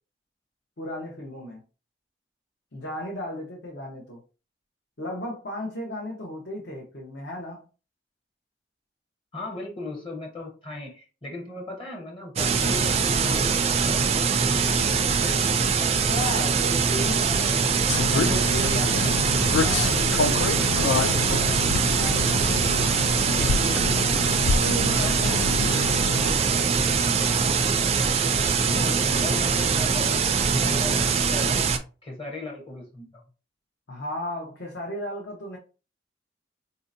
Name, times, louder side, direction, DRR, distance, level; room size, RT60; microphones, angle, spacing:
voice 1, 0.8-1.6 2.7-4.2 5.0-7.6 15.7-21.6 21.9-27.2 33.9-35.6, left 1 dB, 70° left, 0.8 m, -36 dB
voice 2, 9.3-15.1 28.7-31.6 32.0-33.2, left 2 dB, 30° left, 0.8 m, -38 dB
sound 1, 12.4-31.8, right 5 dB, 35° right, 0.3 m, -23 dB
sound 2, 17.9-26.4, left 5 dB, 85° left, 0.3 m, -28 dB
4.1 x 2.7 x 2.5 m
head